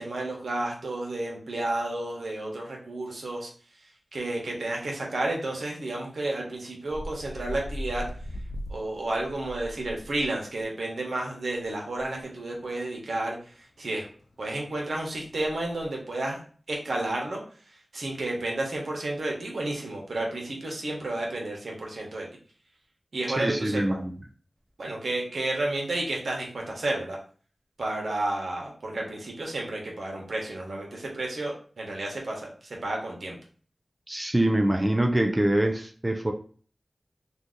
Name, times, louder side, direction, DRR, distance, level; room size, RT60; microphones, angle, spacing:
voice 1, 0.0-3.5 4.1-8.0 8.7-13.4 13.8-14.1 14.4-16.4 16.7-17.4 17.9-22.3 23.1-24.0 24.8-27.2 27.8-32.5 32.8-33.4, right 2 dB, 85° right, -1 dB, 1.0 m, -31 dB
sound 1, 6.9-10.3 10.6-10.7 11.6-11.7 12.0-12.1 12.5-12.6 12.9-13.1 13.7-13.8 14.1-15.9, equal, 80° left, 0.4 m, -39 dB
voice 2, 23.4-24.1 34.1-36.3, right 1 dB, 25° right, 4 dB, 0.4 m, -24 dB
2.7 x 2.4 x 3.7 m, 0.43 s
wide cardioid pair, 50°, 0 cm